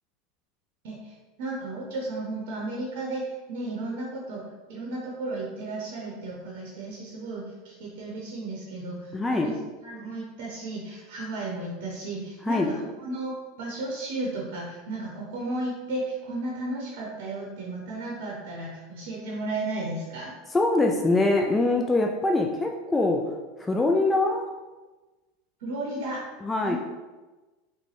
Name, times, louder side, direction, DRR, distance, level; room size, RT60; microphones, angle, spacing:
voice 1, 0.8-4.4 4.7-20.3 25.6-26.2 26.6-26.8, right 2 dB, 70° right, -2 dB, 0.7 m, -34 dB
voice 2, 9.1-9.5 12.4-12.7 20.5-23.3 23.6-24.4 26.4-26.8, left 2 dB, 15° left, 2 dB, 0.3 m, -23 dB
3.7 x 2.2 x 3.3 m, 1.2 s
hypercardioid pair, 105°, 0 cm